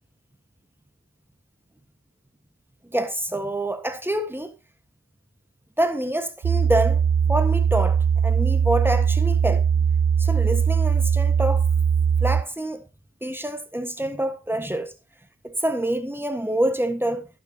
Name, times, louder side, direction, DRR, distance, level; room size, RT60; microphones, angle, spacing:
voice 1, 2.8-4.5 5.8-9.6 10.2-11.6 12.2-12.8 13.2-14.9 15.4-17.3, right 1 dB, 5° right, 1.5 m, -26 dB
sound 1, 6.4-12.4, right 7 dB, 50° right, 0.6 m, -20 dB
11.5 x 9.6 x 2.9 m
cardioid pair, 55°, 30 cm